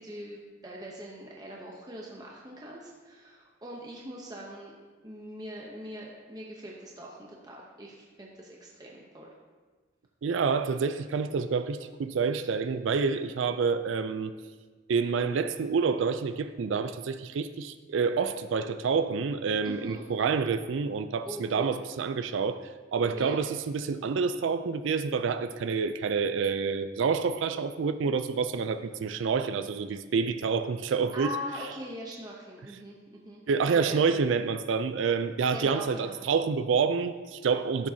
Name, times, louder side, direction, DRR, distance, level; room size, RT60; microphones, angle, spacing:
voice 1, 0.0-4.8 5.0-9.3 19.6-20.0 21.3-21.8 23.1-23.4 31.1-33.4 33.7-34.0 35.5-36.2, equal, 20° right, -2 dB, 0.7 m, -41 dB
voice 2, 10.2-14.3 14.9-22.6 22.9-31.3 33.5-37.9, right 5 dB, 80° right, 11 dB, 0.4 m, -28 dB
11.5 x 7.3 x 2.7 m, 1.4 s
head